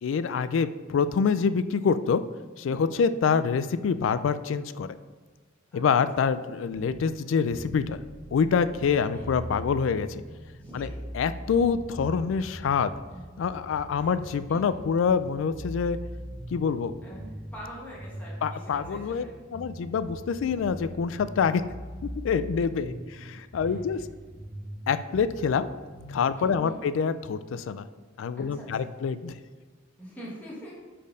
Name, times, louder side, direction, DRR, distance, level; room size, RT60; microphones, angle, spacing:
voice 1, 0.0-2.2 2.6-4.9 5.7-8.0 8.3-10.2 10.7-10.9 11.1-12.9 13.4-16.0 16.5-16.9 18.4-19.2 19.5-21.6 22.2-24.0 24.9-25.7 26.1-27.8 28.2-29.4, left 6 dB, 70° left, 14 dB, 0.3 m, -26 dB
voice 2, 2.7-3.0 5.7-5.8 9.1-9.3 10.6-11.0 14.0-14.1 14.5-14.8 17.0-19.3 23.6-23.7 26.4-26.7 28.4-28.9 30.0-30.7, equal, 10° left, -7 dB, 1.3 m, -44 dB
sound 1, 6.7-26.6, equal, 25° right, 1.4 m, -42 dB
5.2 x 4.3 x 5.0 m, 1.4 s
head